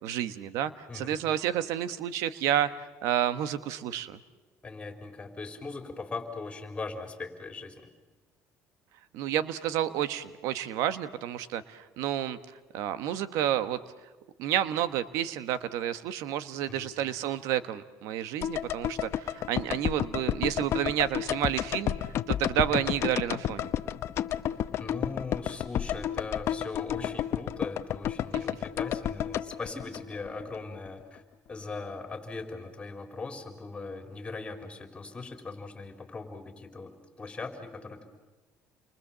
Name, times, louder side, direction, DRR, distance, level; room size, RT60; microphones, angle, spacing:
voice 1, 0.0-2.7 3.0-4.2 9.1-12.4 12.7-13.8 14.4-21.9 22.3-23.7, right 11 dB, 80° right, 12 dB, 1.2 m, -30 dB
voice 2, 0.9-1.2 4.6-7.9 16.7-16.9 22.5-22.8 24.8-31.2 31.5-38.0, left 3 dB, 20° left, 4 dB, 3.9 m, -40 dB
sound 1, 18.4-30.6 30.9-31.0, left 10 dB, 55° left, 0.9 m, -31 dB
29.5 x 23.5 x 7.4 m, 1.3 s
cardioid pair, 120°, 5 cm